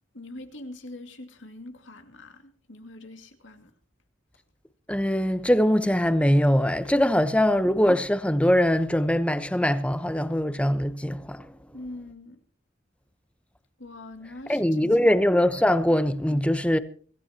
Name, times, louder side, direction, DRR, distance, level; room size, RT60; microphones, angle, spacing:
voice 1, 0.1-3.7 11.7-12.4 13.8-14.9, left 2 dB, 80° left, 2.4 m, -43 dB
voice 2, 4.9-11.5 14.5-16.8, equal, 5° left, 0.9 m, -22 dB
25.0 x 14.5 x 2.9 m
head